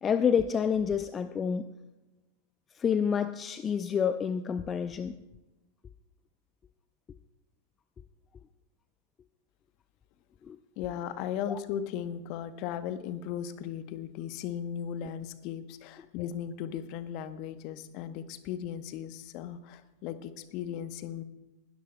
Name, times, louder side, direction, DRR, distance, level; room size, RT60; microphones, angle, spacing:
voice 1, 0.0-1.7 2.7-5.2 10.4-10.6 11.5-11.6, left 7 dB, 20° left, 13 dB, 0.4 m, -28 dB
voice 2, 10.8-21.2, left 9 dB, 40° left, 13 dB, 0.8 m, -37 dB
20.0 x 13.0 x 2.2 m, 1.1 s
figure-of-eight pair, 90°, 0 cm